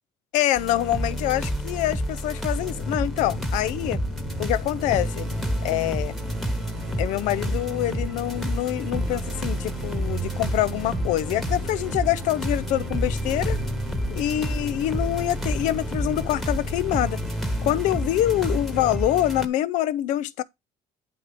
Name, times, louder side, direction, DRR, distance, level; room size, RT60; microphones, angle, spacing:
voice 1, 0.3-4.0 4.4-5.3 5.6-6.1 7.0-13.6 14.1-17.2 17.6-20.4, left 14 dB, 85° left, 0.6 m, -25 dB
sound 1, 0.6-19.5, equal, ahead, 1.2 m, -30 dB
sound 2, 2.6-19.0, left 4 dB, 55° left, 1.0 m, -37 dB
sound 3, 3.3-19.4, right 9 dB, 80° right, 1.3 m, -40 dB
9.5 x 3.5 x 5.0 m
cardioid pair, 110°, 12 cm